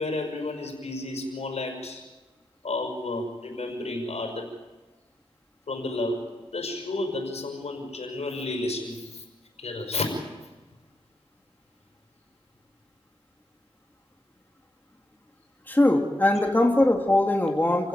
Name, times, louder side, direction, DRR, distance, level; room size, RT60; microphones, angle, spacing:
voice 1, 0.0-2.0 2.6-4.5 5.7-6.2 6.5-9.2 9.6-10.1, left 2 dB, 85° left, 3 dB, 5.8 m, -31 dB
voice 2, 15.7-17.9, left 1 dB, 15° left, 2 dB, 2.8 m, -21 dB
29.0 x 16.5 x 9.0 m, 1.2 s
wide cardioid pair, 65°, 11 cm